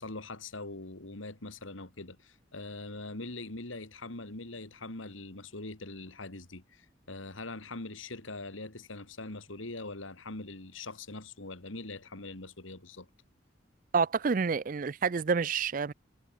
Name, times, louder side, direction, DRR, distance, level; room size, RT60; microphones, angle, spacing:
voice 1, 0.0-13.1, left 2 dB, 90° left, 2.7 m, -42 dB
voice 2, 13.9-15.9, right 5 dB, 45° right, 0.4 m, -28 dB
head